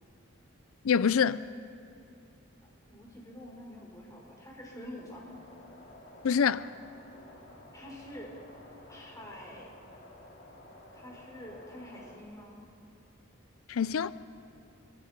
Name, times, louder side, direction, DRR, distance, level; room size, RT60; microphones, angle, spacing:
voice 1, 0.8-1.5 6.2-6.7 13.7-14.1, left 7 dB, 85° left, 0.5 m, -25 dB
voice 2, 2.9-5.3 7.7-8.4 8.9-9.7 10.9-12.6, equal, 15° left, 5.1 m, -46 dB
sound 1, 5.2-12.2, left 1 dB, 65° left, 4.8 m, -53 dB
27.5 x 24.5 x 5.3 m
head